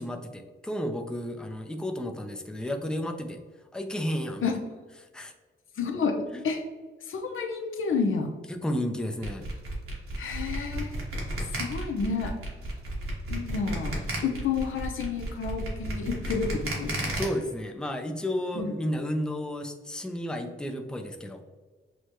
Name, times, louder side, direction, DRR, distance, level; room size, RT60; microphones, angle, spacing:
voice 1, 0.0-3.4 3.7-4.6 5.0-5.3 6.3-6.4 8.5-9.5 16.2-16.4 16.9-21.4, left 1 dB, 5° left, 4 dB, 0.5 m, -32 dB
voice 2, 5.8-6.1 6.4-6.6 7.1-8.3 10.2-10.9 11.6-12.3 13.3-17.1 18.5-18.7, left 5 dB, 70° left, 4 dB, 0.7 m, -30 dB
sound 1, 9.2-17.2, right 1 dB, 85° right, 1.3 m, -33 dB
6.3 x 2.2 x 2.9 m, 1.4 s
cardioid pair, 90°, 21 cm